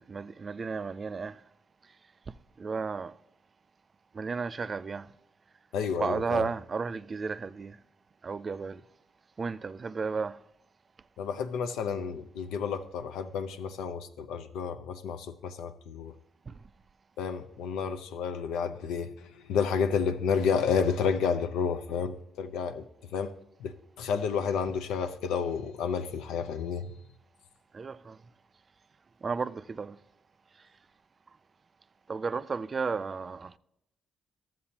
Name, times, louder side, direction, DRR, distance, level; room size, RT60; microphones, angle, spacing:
voice 1, 0.0-1.4 2.6-3.1 4.1-5.1 6.0-7.8 8.2-8.8 9.4-10.4 16.5-16.6 27.7-28.2 29.2-30.0 32.1-33.6, right 4 dB, 35° right, 0.3 m, -33 dB
voice 2, 5.7-6.5 11.2-16.1 17.2-22.8 23.1-23.3 23.6-26.9, left 6 dB, 90° left, 0.6 m, -31 dB
12.5 x 7.5 x 2.9 m
cardioid pair, 90°, 0 cm